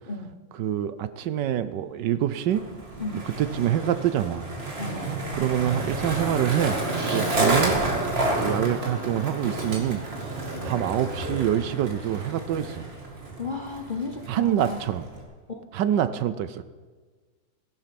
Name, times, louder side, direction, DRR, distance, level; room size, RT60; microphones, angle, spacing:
voice 1, 0.1-0.4 3.0-3.3 4.8-5.1 7.1-7.4 10.5-10.7 13.4-14.8 15.5-15.7 16.0-16.2, left 3 dB, 35° left, 3 dB, 0.8 m, -34 dB
voice 2, 0.6-2.6 3.4-4.5 5.3-6.8 7.1-7.8 8.4-10.0 10.6-12.9 14.3-15.0 15.7-16.6, right 10 dB, 75° right, 13 dB, 1.2 m, -26 dB
Skateboard, 2.5-15.2, right 2 dB, 30° right, 2.4 m, -30 dB
16.5 x 11.5 x 5.9 m, 1.4 s
omnidirectional pair, 2.1 m